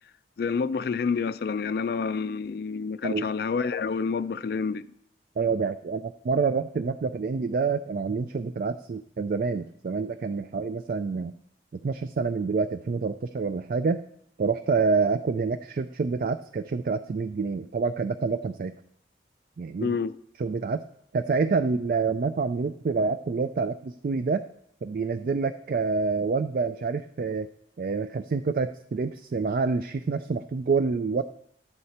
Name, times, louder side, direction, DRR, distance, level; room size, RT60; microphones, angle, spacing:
voice 1, 0.4-4.8 19.8-20.2, left 5 dB, 55° left, 0.3 m, -28 dB
voice 2, 5.4-11.3 11.7-14.0 14.4-18.7 19.6-20.0 20.4-20.8 21.1-24.4 24.8-27.5 27.8-31.2, right 4 dB, 50° right, 0.3 m, -27 dB
12.0 x 8.0 x 4.2 m
head